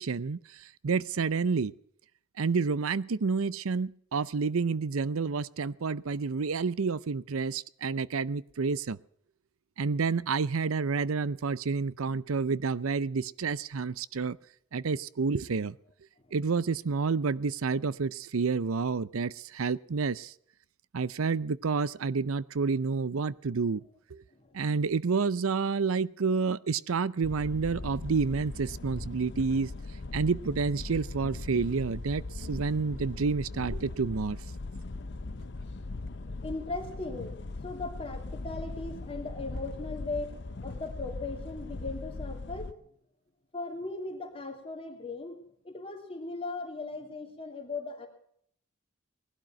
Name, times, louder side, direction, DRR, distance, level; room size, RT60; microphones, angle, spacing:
voice 1, 0.0-1.7 2.4-9.0 9.8-14.4 14.7-15.8 16.3-20.3 20.9-23.8 24.1-24.2 24.5-29.7 30.1-34.4, right 4 dB, 85° right, 20 dB, 0.6 m, -29 dB
voice 2, 24.3-24.6 32.6-32.8 34.8-42.9 43.5-48.1, left 3 dB, 25° left, 2 dB, 3.1 m, -39 dB
sound 1, 27.2-42.7, left 2 dB, 55° left, 0.7 m, -39 dB
19.5 x 12.0 x 5.9 m, 0.65 s
head